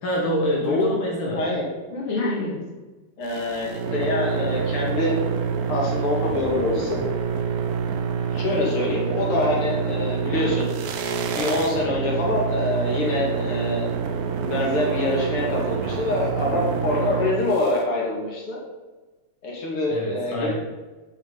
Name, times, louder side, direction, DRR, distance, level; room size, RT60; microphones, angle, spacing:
voice 1, 0.0-1.5 19.9-20.5, equal, 70° left, -2 dB, 1.9 m, -25 dB
voice 2, 1.3-2.6 3.2-5.2 5.7-7.0 8.3-10.7 11.4-13.9 14.4-18.6 19.4-20.5, left 2 dB, 90° left, -3 dB, 2.6 m, -25 dB
sound 1, 3.2-17.8, right 6 dB, 80° right, 0.8 m, -27 dB
8.7 x 5.3 x 3.7 m, 1.2 s
omnidirectional pair, 2.4 m